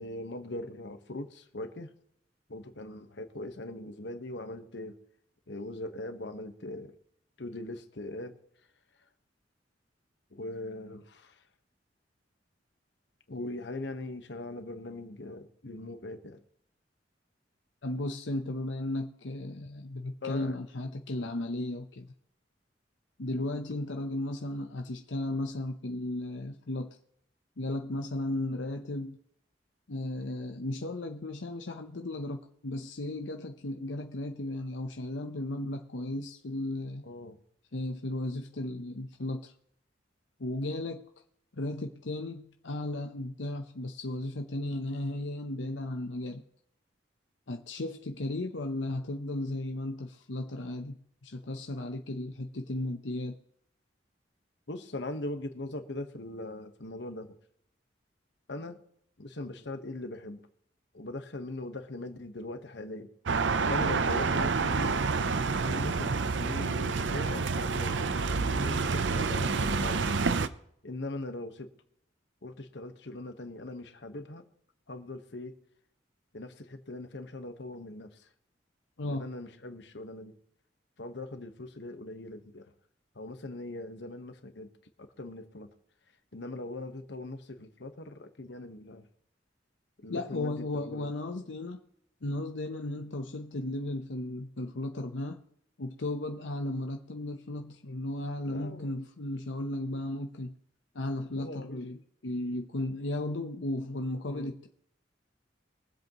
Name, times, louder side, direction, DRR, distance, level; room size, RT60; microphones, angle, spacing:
voice 1, 0.0-1.9 2.5-5.0 5.5-6.9 7.4-8.4 10.3-11.4 13.3-16.4 20.2-20.6 21.2-21.3 37.0-37.4 54.7-57.4 58.5-58.8 59.2-60.4 60.9-63.1 63.7-65.0 65.6-70.0 70.8-71.7 72.4-74.5 74.9-75.5 76.3-78.3 79.0-80.3 81.0-82.7 83.1-84.7 85.0-85.7 86.3-89.1 90.0-91.0 98.4-98.9 101.3-101.8 104.3-104.5, left 2 dB, 70° left, 1.3 m, -40 dB
voice 2, 17.8-22.1 23.2-27.0 27.6-29.2 29.9-37.0 37.7-39.5 40.4-41.0 41.5-46.4 47.5-53.3 79.0-79.2 90.1-91.8 92.2-95.4 95.8-100.5 100.9-104.7, left 1 dB, 90° left, 0.9 m, -35 dB
sound 1, 63.3-70.5, right 4 dB, 80° right, 0.7 m, -28 dB
23.0 x 8.0 x 3.0 m
head